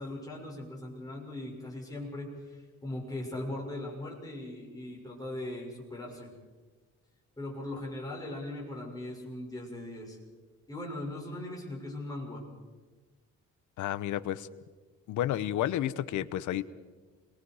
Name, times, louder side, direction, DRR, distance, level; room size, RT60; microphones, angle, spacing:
voice 1, 0.0-6.3 7.4-10.2 10.7-12.4, left 1 dB, 15° left, -3 dB, 6.7 m, -39 dB
voice 2, 13.8-14.5 15.1-16.6, left 12 dB, 90° left, 15 dB, 0.9 m, -31 dB
28.0 x 22.0 x 4.9 m, 1.3 s
cardioid pair, 130°, 29 cm